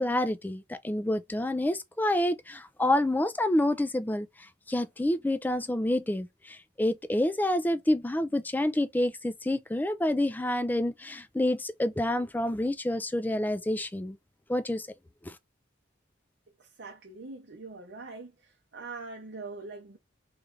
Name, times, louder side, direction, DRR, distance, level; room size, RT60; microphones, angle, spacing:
voice 1, 0.0-14.2 14.5-14.9 15.2-15.4, left 1 dB, 10° left, 0.3 m, -28 dB
voice 2, 16.6-18.3 18.7-20.0, right 3 dB, 60° right, 0.7 m, -42 dB
3.2 x 2.4 x 3.4 m
head